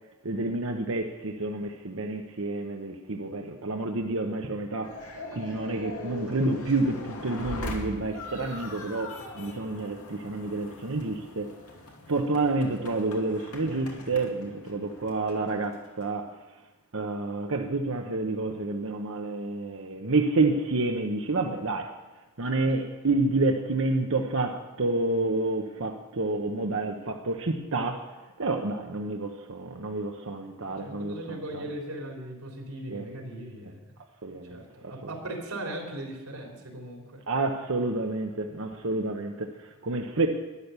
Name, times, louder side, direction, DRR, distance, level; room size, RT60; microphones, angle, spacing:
voice 1, 0.2-4.9 5.3-11.5 12.1-16.3 16.9-21.9 22.4-28.0 28.4-31.6 32.9-33.0 34.2-34.9 37.3-39.5 39.8-40.3, right 2 dB, 65° right, 4 dB, 1.0 m, -29 dB
sound 1, 4.8-16.1, left 2 dB, 90° left, 2.5 m, -41 dB
voice 2, 22.4-22.9 30.7-33.8 34.3-37.2, right 1 dB, 85° right, 0 dB, 3.6 m, -39 dB
12.5 x 10.5 x 7.0 m, 1.1 s
head